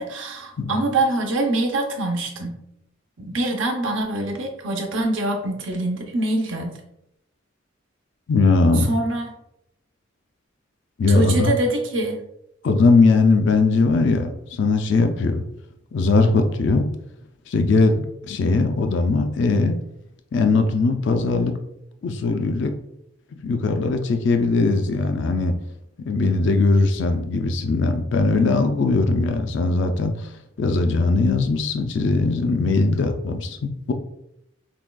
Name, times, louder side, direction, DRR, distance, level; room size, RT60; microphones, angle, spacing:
voice 1, 0.0-2.6 3.2-6.7 8.8-9.3 11.1-12.2, right 2 dB, 70° right, 2 dB, 0.7 m, -24 dB
voice 2, 8.3-8.9 11.0-11.5 12.6-15.4 15.9-16.9 17.5-19.8 20.3-21.5 22.0-22.7 23.4-25.5 26.1-30.3 30.6-33.9, left 3 dB, 65° left, 6 dB, 0.4 m, -20 dB
5.9 x 2.3 x 2.2 m, 0.80 s
head